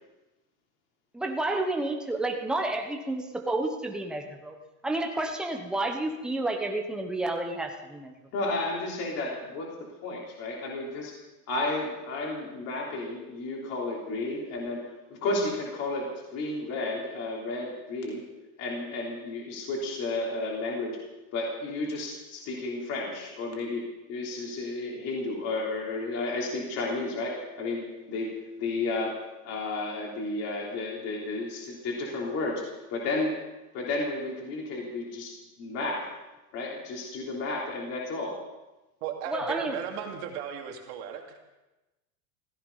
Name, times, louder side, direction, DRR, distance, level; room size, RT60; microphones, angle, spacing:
voice 1, 1.1-4.6 4.8-8.2 39.3-39.8, right 2 dB, ahead, 3 dB, 1.0 m, -30 dB
voice 2, 8.3-9.7 10.0-11.1 11.5-14.8 15.1-18.2 18.6-21.0 21.3-29.2 29.4-32.6 32.9-33.3 33.7-36.1 36.5-38.4, left 2 dB, 35° left, -2 dB, 3.4 m, -32 dB
voice 3, 39.0-41.5, right 8 dB, 50° right, 2 dB, 2.7 m, -36 dB
16.0 x 14.5 x 5.6 m, 1.1 s
supercardioid pair, 165°, 44 cm